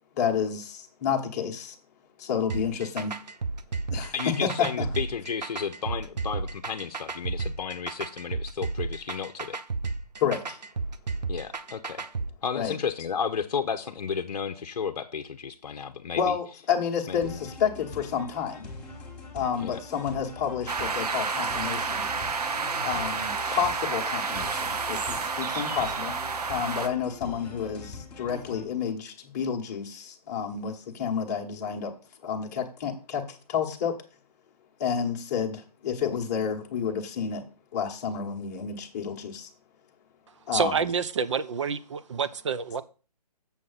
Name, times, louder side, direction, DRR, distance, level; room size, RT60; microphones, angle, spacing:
voice 1, 0.2-1.7 2.2-3.1 3.9-4.8 10.2-10.6 12.5-12.7 16.2-18.7 19.3-22.1 22.8-26.2 26.5-31.9 32.2-34.0 34.8-37.4 37.7-39.5 40.5-40.8, left 7 dB, 25° left, 1.3 m, -30 dB
sound 1, 2.5-12.3, right 4 dB, 90° right, 0.9 m, -33 dB
voice 2, 4.1-9.6 11.3-12.1 12.4-16.4 17.1-17.4 19.6-19.8, left 6 dB, 60° left, 0.8 m, -33 dB
sound 2, 17.2-28.6, left 2 dB, 5° left, 1.3 m, -43 dB
sound 3, 20.7-26.9, right 5 dB, 70° right, 1.2 m, -30 dB
voice 3, 40.5-42.8, right 6 dB, 45° right, 0.6 m, -28 dB
7.4 x 7.1 x 4.0 m
hypercardioid pair, 160°, 21 cm